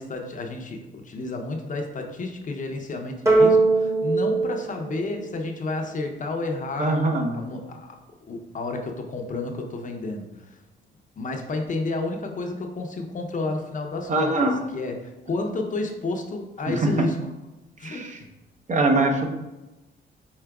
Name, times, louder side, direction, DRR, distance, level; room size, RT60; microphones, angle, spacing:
voice 1, 0.0-7.0 7.3-10.6 11.2-17.2 17.8-18.0, left 2 dB, 40° left, 2 dB, 0.7 m, -31 dB
sound 1, 3.3-5.8, right 3 dB, 15° right, 1.0 m, -21 dB
voice 2, 6.8-7.4 14.1-14.6 16.7-17.1 17.8-18.2 18.7-19.3, right 2 dB, 40° right, 2 dB, 0.7 m, -22 dB
4.7 x 4.3 x 2.3 m, 1.0 s
cardioid pair, 90°, 20 cm